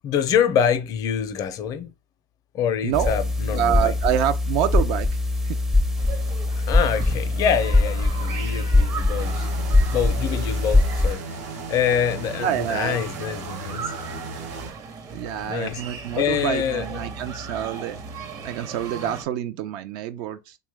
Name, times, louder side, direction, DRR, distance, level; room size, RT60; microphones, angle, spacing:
voice 1, 0.0-1.9 2.5-3.9 6.6-9.5 9.9-11.2 11.7-13.9 15.4-15.8 16.2-17.0, left 8 dB, 50° left, 0.5 m, -25 dB
voice 2, 2.8-3.2 3.5-5.1 5.4-5.6 12.4-13.0 15.1-18.0 18.4-20.6, right 10 dB, 65° right, 0.4 m, -26 dB
sound 1, 2.9-11.1, left 2 dB, 5° right, 0.4 m, -22 dB
sound 2, 6.0-19.2, right 4 dB, 45° right, 0.7 m, -38 dB
sound 3, 9.2-14.7, right 3 dB, 85° right, 0.8 m, -36 dB
2.9 x 2.2 x 3.3 m
supercardioid pair, 105°, 8 cm